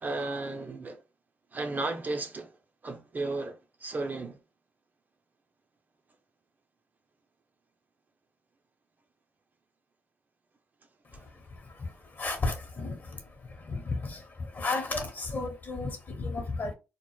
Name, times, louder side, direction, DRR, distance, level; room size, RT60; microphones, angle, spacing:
voice 1, 0.0-1.0 1.5-2.5 2.8-4.4, right 2 dB, 40° right, 0.5 m, -34 dB
voice 2, 12.2-12.9 13.7-14.2 14.6-16.7, left 3 dB, 45° left, 0.9 m, -32 dB
2.2 x 2.0 x 3.0 m
supercardioid pair, 50°, 4 cm